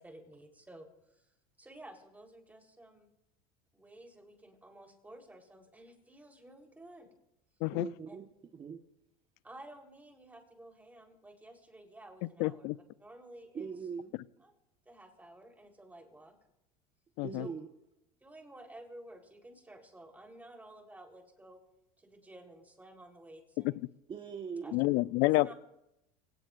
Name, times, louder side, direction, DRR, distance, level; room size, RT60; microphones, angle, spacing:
voice 1, 0.0-3.1 3.7-7.1 8.1-8.2 9.4-12.7 13.0-13.7 14.4-14.5 14.9-16.3 17.4-17.6 18.2-21.6 22.0-23.8 24.6-24.7 25.4-25.5, right 1 dB, 10° right, 2 dB, 3.8 m, -53 dB
voice 2, 7.7-8.3 8.5-8.8 13.5-14.1 17.2-17.7 24.1-24.8, right 6 dB, 30° right, 4 dB, 1.3 m, -41 dB
voice 3, 12.4-12.8 17.2-17.5 24.7-25.5, left 21 dB, 65° left, 19 dB, 0.5 m, -28 dB
24.5 x 18.0 x 2.5 m, 0.86 s
supercardioid pair, 110°, 18 cm